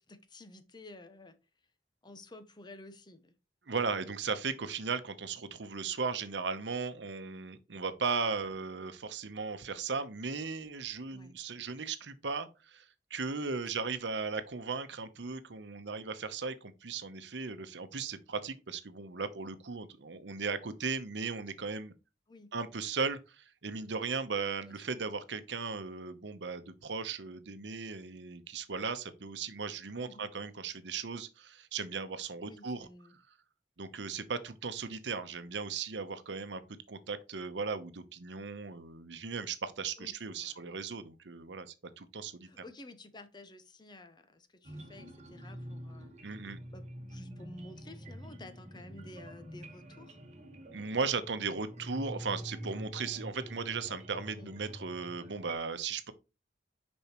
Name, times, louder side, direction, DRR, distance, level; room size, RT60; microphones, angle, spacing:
voice 1, 0.0-1.4 2.0-3.3 11.1-11.3 13.6-13.8 22.3-22.5 24.6-24.8 30.0-30.3 32.4-33.2 40.0-40.1 40.4-40.6 42.4-46.4 46.7-50.2 54.3-54.5, left 2 dB, 25° left, 0.8 m, -52 dB
voice 2, 3.7-12.8 13.1-21.9 22.5-32.9 33.8-36.6 36.9-42.6 46.2-46.6 50.7-56.1, right 5 dB, 80° right, 0.9 m, -37 dB
sound 1, 44.6-55.6, right 1 dB, 40° right, 1.4 m, -46 dB
6.8 x 5.4 x 3.0 m
head